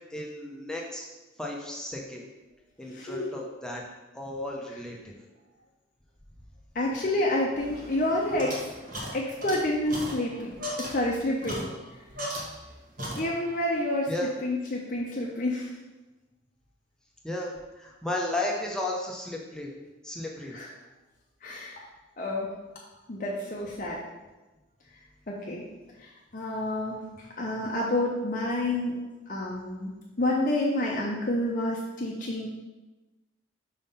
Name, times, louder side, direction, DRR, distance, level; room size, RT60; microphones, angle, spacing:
voice 1, 0.1-1.1 1.4-2.3 2.8-3.8 4.1-5.1 14.1-14.3 17.2-19.7 20.0-20.6, left 1 dB, 5° left, -2 dB, 0.7 m, -34 dB
voice 2, 2.9-3.3 6.7-8.7 9.1-10.5 10.9-11.7 13.1-14.1 14.4-15.7 20.5-20.7 21.4-21.9 22.2-22.5 23.1-24.0 25.3-25.6 26.0-29.0 29.3-32.5, left 1 dB, 40° left, -3 dB, 0.6 m, -29 dB
sound 1, 7.6-12.7 13.0-13.7, equal, 40° right, 1.3 m, -38 dB
5.4 x 3.6 x 5.5 m, 1.1 s
head